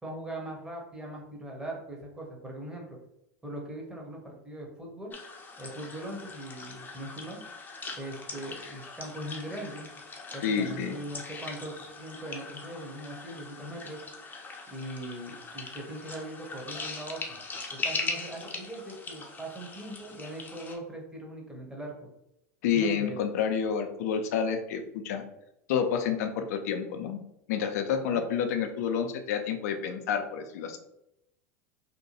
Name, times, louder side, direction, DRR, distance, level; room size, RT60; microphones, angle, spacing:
voice 1, 0.0-3.0 3.4-5.1 5.6-7.4 8.0-9.9 10.3-14.0 14.7-17.4 17.7-22.1 22.7-23.2 28.1-28.3, right 1 dB, 10° right, -1 dB, 0.9 m, -40 dB
sound 1, 5.1-20.8, left 3 dB, 20° left, 0.6 m, -40 dB
voice 2, 10.4-10.9 22.6-25.2 25.7-27.2 27.5-30.8, left 7 dB, 70° left, 6 dB, 0.4 m, -29 dB
2.8 x 2.2 x 2.8 m, 0.83 s
hypercardioid pair, 90°, 9 cm